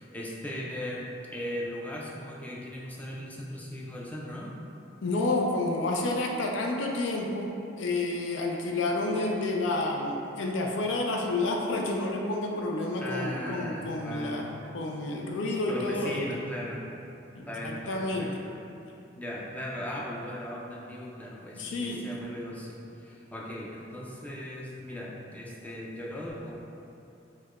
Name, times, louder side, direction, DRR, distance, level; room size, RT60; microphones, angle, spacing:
voice 1, 0.0-4.5 13.0-15.4 15.7-16.8 17.5-18.5 19.2-26.6, left 1 dB, 10° left, -4 dB, 0.4 m, -38 dB
voice 2, 5.0-7.5 7.8-14.5 14.7-16.2 17.3-18.3 21.6-22.0, left 2 dB, 80° left, 0 dB, 0.4 m, -29 dB
4.5 x 2.2 x 2.4 m, 2.7 s
head